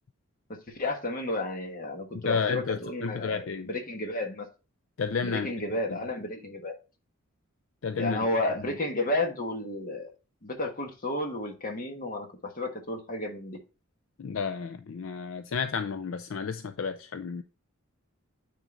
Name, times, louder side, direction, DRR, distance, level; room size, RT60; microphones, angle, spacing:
voice 1, 0.5-4.5 5.2-6.7 8.0-10.1 10.4-13.6, left 2 dB, 40° left, 1.4 m, -32 dB
voice 2, 2.2-3.7 5.0-5.5 7.8-8.2 14.2-17.4, left 5 dB, 65° left, 0.4 m, -31 dB
9.2 x 3.9 x 3.8 m
head